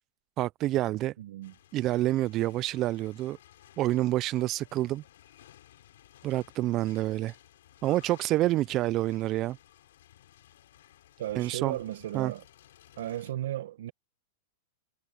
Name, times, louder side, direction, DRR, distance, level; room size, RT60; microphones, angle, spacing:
voice 1, 0.4-1.1 1.7-3.4 3.8-5.0 6.2-7.3 7.8-9.6 11.4-11.8 12.1-12.3, right 15 dB, 35° right, 0.4 m, -28 dB
voice 2, 1.2-1.5 11.2-12.4 13.0-13.9, right 13 dB, 70° right, 1.3 m, -35 dB
sound 1, 1.4-13.3, left 12 dB, 75° left, 4.8 m, -57 dB
hypercardioid pair, 130°, 0 cm